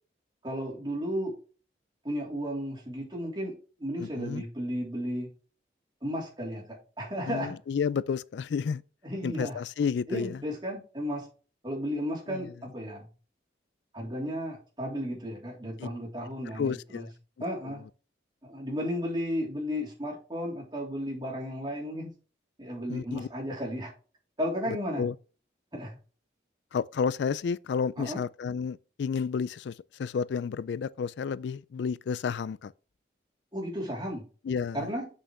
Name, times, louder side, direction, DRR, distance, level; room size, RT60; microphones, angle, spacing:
voice 1, 0.4-1.3 2.0-3.5 3.8-5.3 6.0-7.5 9.0-9.6 10.1-11.3 11.6-13.1 13.9-17.0 17.4-17.8 18.4-22.1 22.6-23.9 24.4-25.0 25.7-26.0 28.0-28.2 33.5-34.2 34.7-35.1, equal, 25° right, 3.3 m, -34 dB
voice 2, 4.0-4.4 7.3-8.8 9.2-10.4 12.3-12.5 15.8-15.9 16.5-17.1 17.4-17.8 22.9-23.3 24.7-25.1 26.7-32.7 34.4-34.9, left 6 dB, 70° left, 0.3 m, -31 dB
8.0 x 6.3 x 3.2 m
head